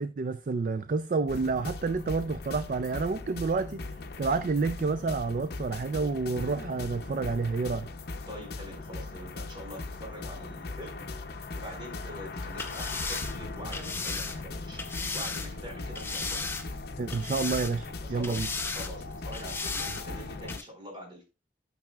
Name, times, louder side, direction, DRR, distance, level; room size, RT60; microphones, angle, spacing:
voice 1, 0.0-3.8 4.2-7.9 17.0-18.5, right 4 dB, 50° right, 0.4 m, -29 dB
sound 1, 1.3-20.6, left 3 dB, 60° left, 0.6 m, -39 dB
voice 2, 8.3-11.1 11.5-14.8 15.1-16.5 18.0-21.2, equal, 30° right, 4.1 m, -44 dB
sound 2, 12.5-15.5 15.9-16.8 17.1-17.9 18.2-18.9 19.3-20.0 20.5-20.6, left 4 dB, 15° left, 0.6 m, -35 dB
12.0 x 6.1 x 2.3 m
head